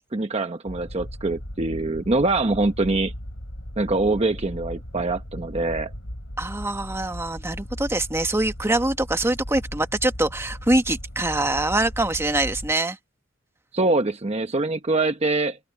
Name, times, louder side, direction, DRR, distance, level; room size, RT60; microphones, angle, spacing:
voice 1, 0.0-3.1 3.8-5.9 13.7-15.6, right 2 dB, 30° right, 0.9 m, -24 dB
sound 1, 0.7-12.7, equal, 85° left, 6.9 m, -37 dB
voice 2, 6.4-13.0, right 2 dB, 15° right, 1.3 m, -24 dB
open air
head